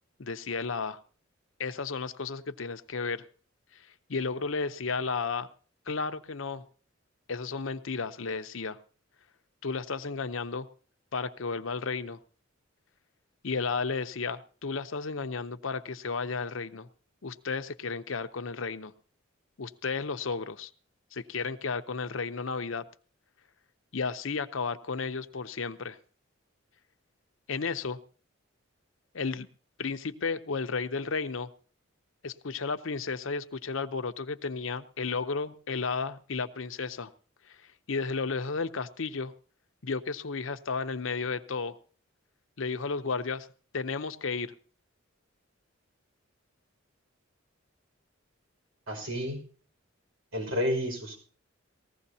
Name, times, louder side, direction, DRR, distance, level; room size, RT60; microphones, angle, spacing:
voice 1, 0.2-1.0 1.6-3.2 4.1-5.5 5.9-6.6 7.3-8.8 9.6-10.7 11.1-12.2 13.4-16.9 17.2-18.9 19.6-20.7 21.1-22.8 23.9-26.0 27.5-28.0 29.1-29.5 29.8-31.5 32.2-37.1 37.5-37.6 37.9-39.3 39.8-41.8 42.6-43.5 43.7-44.5, left 4 dB, 70° left, 11 dB, 0.8 m, -33 dB
voice 2, 48.9-49.4 50.3-51.2, equal, 85° right, 2 dB, 5.5 m, -30 dB
19.5 x 15.5 x 2.8 m, 0.42 s
head